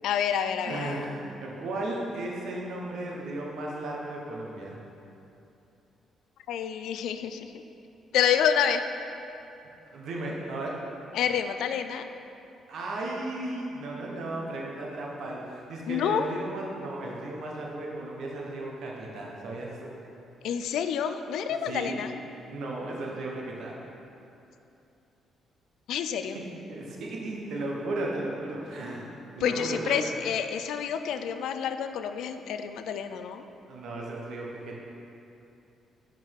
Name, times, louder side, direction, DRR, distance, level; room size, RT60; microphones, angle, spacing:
voice 1, 0.0-1.0 6.5-7.5 8.1-8.8 11.1-12.0 15.9-16.3 20.4-22.1 25.9-26.4 29.4-33.4, left 8 dB, 80° left, 9 dB, 0.3 m, -28 dB
voice 2, 0.7-4.8 9.9-10.8 12.7-19.9 21.6-21.9 22.5-23.7 26.3-29.1 29.3-30.0 33.7-34.8, right 2 dB, 70° right, -2 dB, 1.1 m, -35 dB
5.6 x 5.1 x 4.7 m, 2.8 s
cardioid pair, 90°, 0 cm